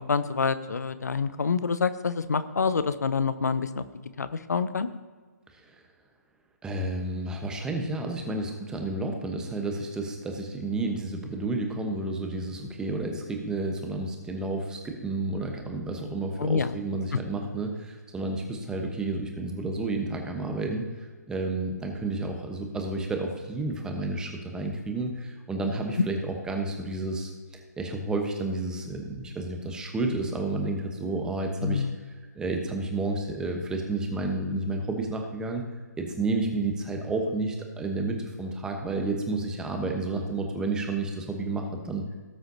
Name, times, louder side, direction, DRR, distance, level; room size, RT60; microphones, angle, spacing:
voice 1, 0.0-3.8 4.2-4.9 16.4-16.7 31.6-31.9, left 5 dB, 70° left, 13 dB, 0.8 m, -27 dB
voice 2, 6.6-27.3 27.8-35.6 36.0-42.0, right 2 dB, 5° right, 3 dB, 1.1 m, -31 dB
18.0 x 7.8 x 2.8 m, 1.5 s
figure-of-eight pair, 135°, 9 cm